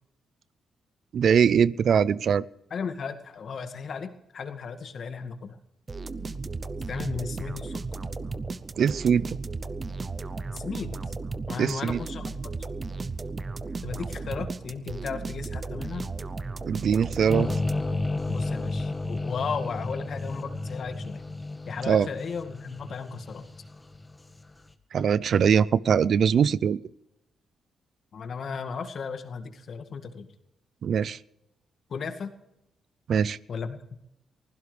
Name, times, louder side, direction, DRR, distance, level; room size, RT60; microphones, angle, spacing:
voice 1, 1.1-2.4 8.8-9.4 11.6-12.0 16.6-17.5 21.9-22.1 24.9-26.8 30.8-31.2 33.1-33.4, right 7 dB, 65° right, 20 dB, 0.5 m, -22 dB
voice 2, 2.7-5.6 6.9-7.8 10.5-11.0 11.5-12.5 13.8-16.1 18.3-21.3 21.7-23.5 28.1-30.3 31.9-32.3 33.5-33.8, left 5 dB, 60° left, 8 dB, 1.9 m, -35 dB
sound 1, 5.9-18.1, right 3 dB, 35° right, 0.8 m, -35 dB
sound 2, 17.3-24.4, left 2 dB, 20° left, 1.6 m, -32 dB
23.5 x 16.0 x 3.4 m, 0.83 s
supercardioid pair, 65°, 0 cm